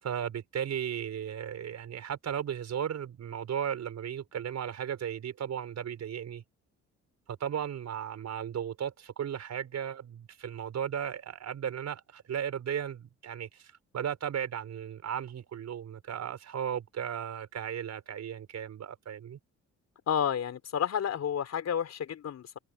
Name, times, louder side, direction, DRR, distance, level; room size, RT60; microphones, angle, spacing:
voice 1, 0.0-6.4 7.3-19.4, right 9 dB, 60° right, 5.7 m, -35 dB
voice 2, 20.1-22.6, left 8 dB, 60° left, 4.7 m, -31 dB
cardioid pair, 90°, 30 cm